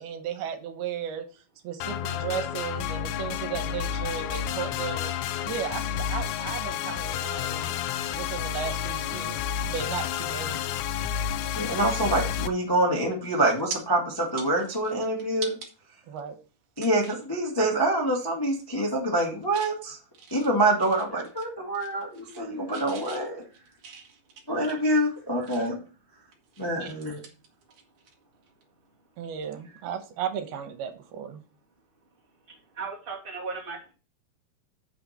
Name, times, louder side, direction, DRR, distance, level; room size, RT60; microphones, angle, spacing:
voice 1, 0.0-5.1 5.5-7.8 8.1-9.4 9.7-10.6 16.1-16.4 26.8-26.9 29.2-31.4, right 8 dB, 80° right, 7 dB, 3.0 m, -35 dB
sound 1, 1.8-12.5, left 9 dB, 85° left, 2.5 m, -30 dB
voice 2, 11.5-15.6 16.8-20.0 20.3-23.4 24.5-25.8 26.6-27.2, right 1 dB, 10° left, -3 dB, 1.1 m, -26 dB
sound 2, 12.9-13.0 13.3-13.8 14.2-15.7 16.2-16.3 16.8-17.3 17.7-17.9 18.2-18.6 19.0-19.8 20.1-21.5 21.7-22.5 22.7-25.9 26.3-28.1 28.4-28.6 30.5-30.7, right 6 dB, 55° right, 2.1 m, -43 dB
voice 3, 32.5-33.9, right 4 dB, 15° right, -4 dB, 2.3 m, -37 dB
8.8 x 6.0 x 4.4 m, 0.36 s
omnidirectional pair, 4.5 m